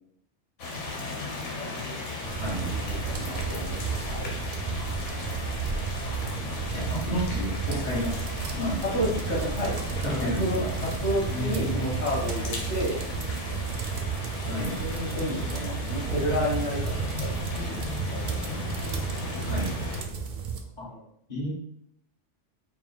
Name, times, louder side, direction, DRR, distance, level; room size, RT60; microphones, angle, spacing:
sound 1, 0.6-20.0, left 3 dB, 90° left, 1.2 m, -36 dB
voice 1, 1.6-2.0 2.6-4.3 8.9-9.7 10.0-13.0 14.4-16.9 17.2-18.6 20.9-21.0, equal, 70° left, -5 dB, 1.6 m, -32 dB
sound 2, 2.2-20.6, right 6 dB, 55° right, 0.6 m, -32 dB
voice 2, 2.3-2.8 6.7-8.2 8.5-9.0 10.0-10.7 11.3-11.9 14.5-14.8 19.4-19.7 20.8-20.9 21.3-21.5, equal, 40° left, -6 dB, 1.3 m, -32 dB
4.4 x 2.1 x 4.1 m, 0.71 s
omnidirectional pair, 1.2 m